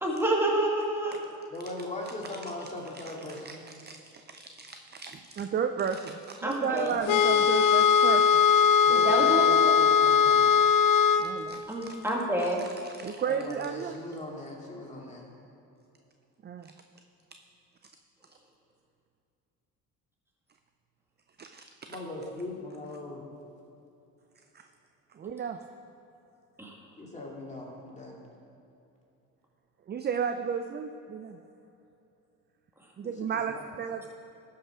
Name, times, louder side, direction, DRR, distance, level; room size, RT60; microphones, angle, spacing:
voice 1, 0.0-1.2 6.4-6.9 8.9-9.5 11.7-12.6 26.6-26.7, right 1 dB, 5° right, -2 dB, 2.0 m, -28 dB
voice 2, 1.5-3.6 8.8-10.6 13.3-15.3 21.9-23.2 27.0-28.2 33.0-33.1 33.5-33.6, left 2 dB, 15° left, -2 dB, 2.3 m, -39 dB
voice 3, 3.4-8.3 8.7-8.8 11.2-12.0 13.0-14.0 16.4-16.7 21.4-21.6 24.5-24.6 25.1-25.6 29.9-31.4 33.0-34.1, right 7 dB, 25° right, 7 dB, 0.4 m, -33 dB
sound 1, 7.1-11.3, left 7 dB, 55° left, 0.7 m, -20 dB
13.0 x 5.8 x 4.9 m, 2.8 s
supercardioid pair, 75°, 41 cm